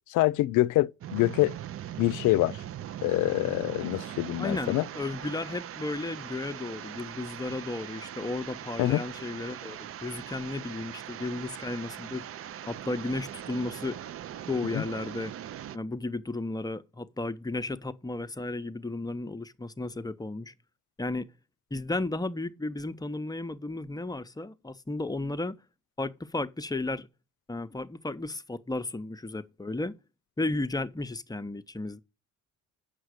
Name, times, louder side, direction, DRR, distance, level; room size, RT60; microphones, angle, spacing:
voice 1, 0.1-1.5 2.0-2.6 3.0-4.8 8.8-9.0 14.7-14.8, left 17 dB, 85° left, 0.5 m, -25 dB
sound 1, 1.0-15.8, right 10 dB, 50° right, 0.5 m, -41 dB
voice 2, 4.4-12.3 12.7-14.0 14.5-15.3 15.7-20.5 21.0-21.3 21.7-25.6 26.0-27.1 27.5-29.9 30.4-32.0, left 2 dB, 15° left, 0.7 m, -34 dB
8.2 x 5.7 x 6.4 m
cardioid pair, 90°, 30 cm